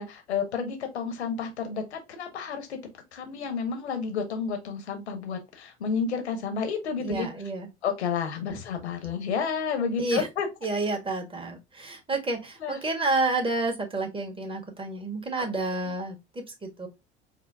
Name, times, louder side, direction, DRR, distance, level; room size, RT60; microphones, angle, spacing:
voice 1, 0.0-2.8 3.1-7.3 7.8-10.5 12.6-12.8, left 6 dB, 85° left, 1.1 m, -31 dB
voice 2, 7.0-7.7 10.0-10.3 10.6-16.9, right 2 dB, 15° right, 1.4 m, -30 dB
5.0 x 2.1 x 3.4 m
hypercardioid pair, 70°, 32 cm